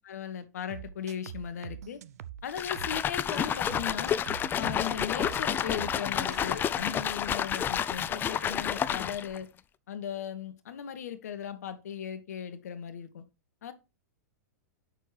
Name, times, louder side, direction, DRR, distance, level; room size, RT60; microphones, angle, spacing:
voice 1, 0.0-2.0 2.4-4.2 4.5-9.5 9.9-13.2 13.6-13.7, left 8 dB, 70° left, 1.2 m, -37 dB
sound 1, 0.7-3.0 3.3-6.0 6.3-6.6, right 10 dB, 70° right, 0.6 m, -44 dB
sound 2, 2.5-9.4, left 9 dB, 25° left, 0.5 m, -30 dB
9.0 x 6.5 x 3.3 m
hypercardioid pair, 105°, 9 cm